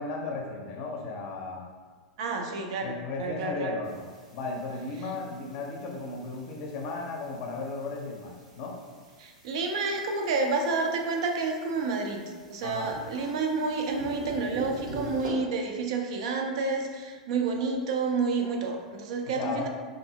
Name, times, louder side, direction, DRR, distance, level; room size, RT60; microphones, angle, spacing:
voice 1, 0.0-1.6 2.8-4.1 4.3-8.8 12.6-12.9 19.3-19.7, left 3 dB, 45° left, 0 dB, 0.5 m, -35 dB
voice 2, 2.2-3.8 9.2-12.2 12.5-19.7, right 4 dB, 55° right, 3 dB, 0.4 m, -29 dB
sound 1, 3.8-15.3, right 2 dB, 85° right, 0.9 m, -45 dB
2.7 x 2.5 x 2.6 m, 1.5 s
figure-of-eight pair, 90°, 4 cm